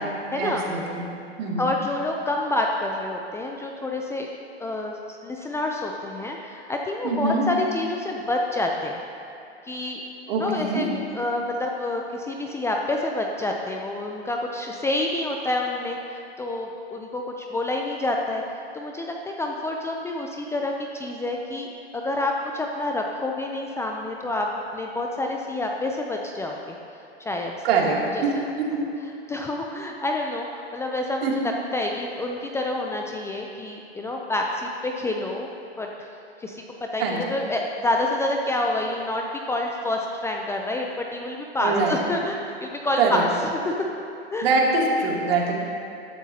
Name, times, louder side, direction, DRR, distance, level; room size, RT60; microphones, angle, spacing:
voice 1, 0.4-1.0 1.4-1.7 7.0-7.4 10.3-10.8 27.6-27.9 28.6-28.8 31.2-31.3 37.0-37.2 41.6-42.0 43.0-43.2 44.4-45.5, right 4 dB, 60° right, -2 dB, 2.8 m, -23 dB
voice 2, 1.6-4.3 4.6-5.0 5.2-9.0 9.6-10.0 10.4-10.9 11.1-21.7 21.9-24.5 24.7-26.6 27.2-27.5 28.1-28.2 29.3-35.5 35.8-36.1 36.4-43.9 44.3-44.5 45.4-45.5, left 2 dB, 10° left, 1 dB, 0.5 m, -28 dB
16.5 x 12.0 x 2.8 m, 2.6 s
hypercardioid pair, 120°, 33 cm